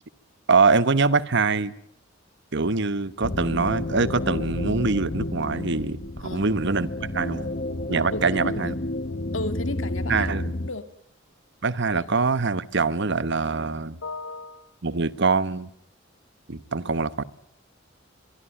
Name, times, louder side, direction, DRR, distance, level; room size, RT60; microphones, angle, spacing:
voice 1, 0.5-1.7 2.5-7.5 7.9-8.7 10.1-10.5 11.6-14.0 14.8-15.7 16.5-17.2, right 4 dB, 65° right, 1.2 m, -24 dB
sound 1, 3.2-10.7, left 2 dB, 45° left, 1.0 m, -31 dB
voice 2, 6.2-6.6 8.1-8.8 9.3-10.9 14.0-14.7, left 2 dB, 85° left, 2.4 m, -34 dB
23.5 x 23.0 x 9.1 m
head